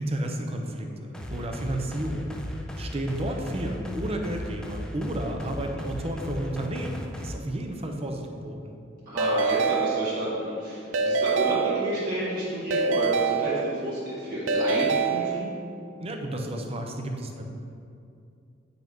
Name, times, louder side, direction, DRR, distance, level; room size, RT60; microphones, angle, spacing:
voice 1, 0.0-2.3 2.8-8.8 16.0-17.4, right 1 dB, 30° right, 3 dB, 0.7 m, -32 dB
sound 1, 1.1-7.3, left 1 dB, 5° left, 0.5 m, -36 dB
voice 2, 9.1-15.5, equal, 45° right, -10 dB, 1.8 m, -30 dB
Keyboard (musical) / Ringtone, 9.2-10.5 10.9-12.3 12.7-14.1 14.5-15.8, right 5 dB, 80° right, 0.4 m, -26 dB
9.0 x 5.9 x 3.6 m, 2.5 s
head